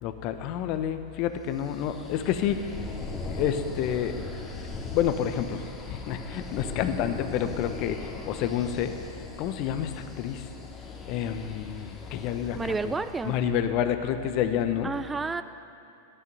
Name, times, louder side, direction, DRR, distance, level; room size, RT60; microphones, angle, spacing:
voice 1, 0.0-2.7 3.2-4.2 4.9-9.0 9.4-10.5 11.0-12.9 13.2-14.9, left 9 dB, 50° left, 9 dB, 1.0 m, -29 dB
sound 1, 1.6-13.4, left 3 dB, 20° left, 2.1 m, -39 dB
voice 2, 12.5-13.4 14.8-15.4, right 4 dB, 15° right, 12 dB, 0.4 m, -30 dB
14.0 x 11.0 x 5.5 m, 2.7 s
hypercardioid pair, 100°, 0 cm